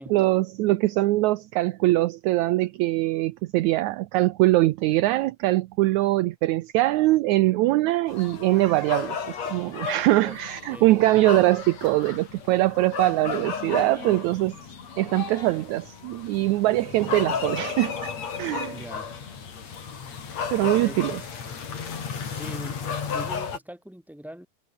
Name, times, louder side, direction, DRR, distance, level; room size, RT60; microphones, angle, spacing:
voice 1, 0.1-14.6 15.0-18.1 18.4-18.8 20.5-21.2, right 17 dB, 75° right, 1.9 m, -22 dB
sound 1, 8.1-23.6, left 6 dB, 55° left, 4.3 m, -34 dB
voice 2, 18.7-19.1 20.6-21.0 22.2-24.5, equal, ahead, 5.5 m, -42 dB
omnidirectional pair, 3.7 m